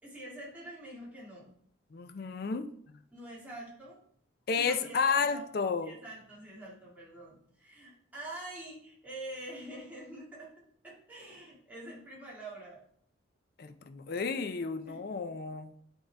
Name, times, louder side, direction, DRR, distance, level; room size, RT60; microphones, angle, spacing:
voice 1, 0.0-1.5 3.1-4.0 4.5-5.5 5.8-10.5 10.8-12.8 14.8-15.4, right 1 dB, 10° right, -6 dB, 1.9 m, -46 dB
voice 2, 1.9-2.7 4.5-5.9 13.6-15.7, left 5 dB, 50° left, 9 dB, 0.4 m, -31 dB
7.9 x 3.7 x 3.3 m, 0.64 s
head